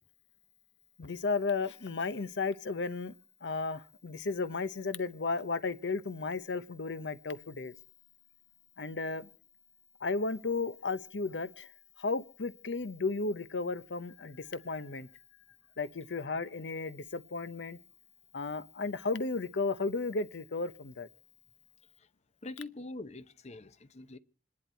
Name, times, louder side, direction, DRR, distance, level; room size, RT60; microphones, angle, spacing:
voice 1, 1.0-3.1 3.4-7.7 8.8-9.3 10.0-11.7 12.0-15.1 15.8-17.8 18.3-21.1, left 3 dB, 70° left, 0.8 m, -34 dB
voice 2, 22.4-24.2, left 2 dB, 40° left, 0.8 m, -44 dB
27.5 x 10.5 x 4.5 m
head